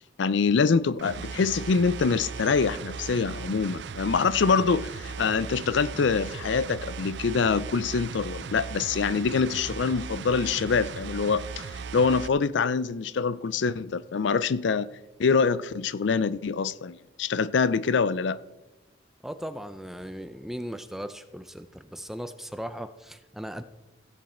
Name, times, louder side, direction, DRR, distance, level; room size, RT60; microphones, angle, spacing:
voice 1, 0.2-14.9 15.2-18.4, left 5 dB, 70° left, 0.4 m, -25 dB
sound 1, 1.0-12.3, right 5 dB, 60° right, 0.4 m, -38 dB
voice 2, 19.2-23.6, equal, ahead, 0.5 m, -38 dB
16.0 x 7.9 x 4.3 m
head